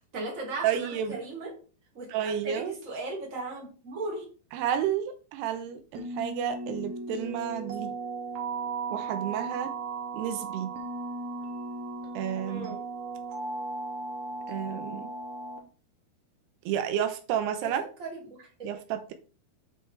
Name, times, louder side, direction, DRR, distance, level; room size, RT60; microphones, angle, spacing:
voice 1, 0.1-1.5 1.9-2.1 2.4-4.2 12.5-12.8 17.6-17.7 18.0-18.7, right 2 dB, 25° right, 2.2 m, -37 dB
voice 2, 0.6-1.2 2.1-2.8 4.5-7.9 8.9-9.7 10.1-10.7 12.1-12.8 14.5-15.1 16.7-17.9 18.6-19.1, right 9 dB, 85° right, 2.7 m, -31 dB
sound 1, 5.9-15.6, right 3 dB, 60° right, 2.1 m, -36 dB
7.9 x 4.6 x 4.5 m
omnidirectional pair, 4.8 m